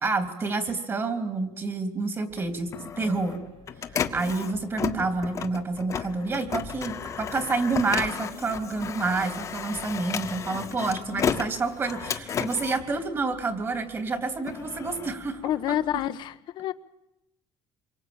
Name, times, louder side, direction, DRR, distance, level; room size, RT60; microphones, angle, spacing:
voice 1, 0.0-3.4 3.9-15.8, right 3 dB, 25° right, 8 dB, 3.3 m, -29 dB
Printer, 2.3-13.7 14.2-16.1, left 7 dB, 35° left, 1.6 m, -33 dB
Piano, 3.0-11.0, right 5 dB, 75° right, 6.2 m, -52 dB
voice 2, 15.4-16.7, left 12 dB, 55° left, 13 dB, 1.2 m, -28 dB
27.0 x 24.0 x 8.9 m, 0.89 s
cardioid pair, 155°, 9 cm